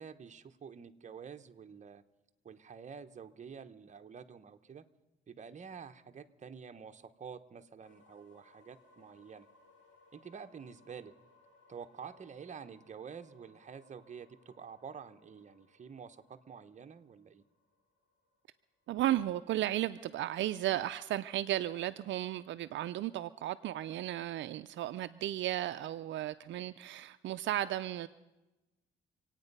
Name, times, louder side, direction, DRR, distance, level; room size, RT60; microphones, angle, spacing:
voice 1, 0.0-2.0 2.4-4.8 5.3-9.5 10.1-11.1 11.7-17.4, right 6 dB, 35° right, 8 dB, 0.9 m, -49 dB
sound 1, 7.8-19.6, left 2 dB, 70° left, 7.0 m, -66 dB
voice 2, 18.9-28.1, right 13 dB, 70° right, 11 dB, 0.5 m, -34 dB
26.0 x 9.0 x 5.4 m, 1.0 s
cardioid pair, 90°, 20 cm